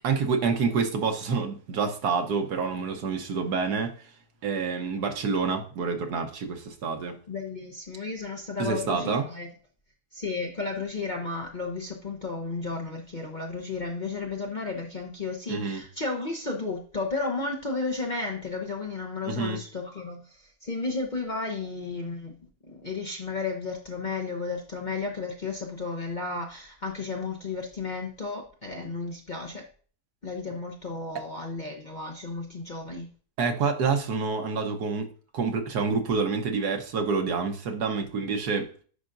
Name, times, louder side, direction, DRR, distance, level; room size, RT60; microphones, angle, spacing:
voice 1, 0.0-4.1 4.4-7.2 8.6-9.2 15.5-15.8 19.2-19.6 33.4-38.7, right 5 dB, 70° right, 1.5 m, -28 dB
voice 2, 7.3-9.5 10.1-22.4 22.6-29.6 30.2-33.1, left 3 dB, 35° left, 0.8 m, -33 dB
10.0 x 5.0 x 2.6 m
omnidirectional pair, 1.8 m